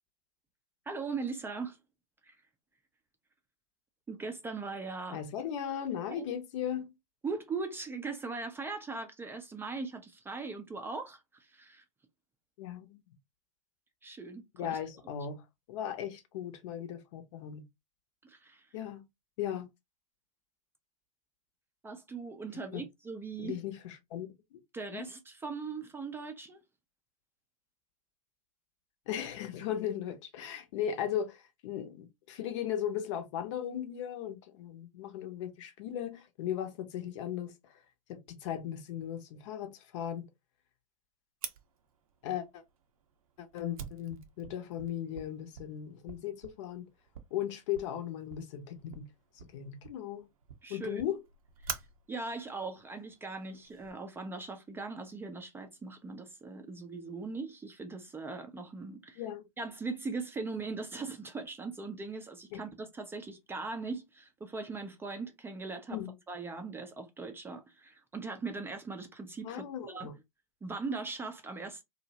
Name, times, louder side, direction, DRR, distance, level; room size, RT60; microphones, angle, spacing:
voice 1, 0.9-1.8 2.2-2.4 4.1-5.2 6.1-6.3 7.2-11.8 14.0-14.8 15.0-15.1 18.2-18.7 21.8-23.6 24.7-26.6 50.6-51.0 51.6-51.8 52.1-59.2 59.6-66.0 66.3-70.1 70.6-71.8, right 4 dB, 10° right, 0.4 m, -40 dB
voice 2, 5.1-6.9 12.6-13.0 14.6-15.4 15.7-17.6 18.7-19.1 19.4-19.7 22.7-22.9 23.4-24.6 24.9-25.0 29.1-37.8 38.1-40.3 42.2-42.6 43.4-46.9 47.3-49.1 49.5-50.3 50.7-51.2 59.2-59.5 62.5-62.6 65.9-66.1 69.4-70.1, left 10 dB, 55° left, 0.6 m, -37 dB
Fire, 41.4-53.9, right 7 dB, 70° right, 0.6 m, -48 dB
2.6 x 2.0 x 2.7 m
figure-of-eight pair, 95°, 19 cm